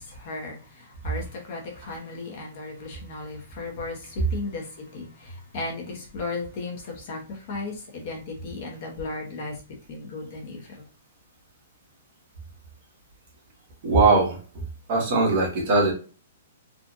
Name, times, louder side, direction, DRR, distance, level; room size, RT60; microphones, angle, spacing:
voice 1, 0.0-9.6 9.9-10.9, left 3 dB, 35° left, 0.9 m, -35 dB
voice 2, 13.8-14.4 14.9-15.9, right 3 dB, 30° right, 1.4 m, -20 dB
3.7 x 2.4 x 2.5 m
hypercardioid pair, 175°, 0 cm